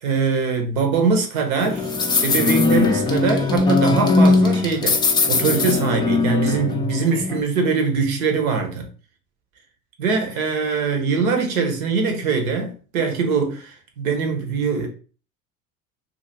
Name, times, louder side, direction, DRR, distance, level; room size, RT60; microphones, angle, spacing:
voice 1, 0.0-5.0 5.3-8.9 10.0-14.9, right 5 dB, 70° right, 0.9 m, -22 dB
sound 1, 1.6-7.4, left 3 dB, 10° left, 0.3 m, -19 dB
2.8 x 2.7 x 2.8 m
figure-of-eight pair, 65°, 43 cm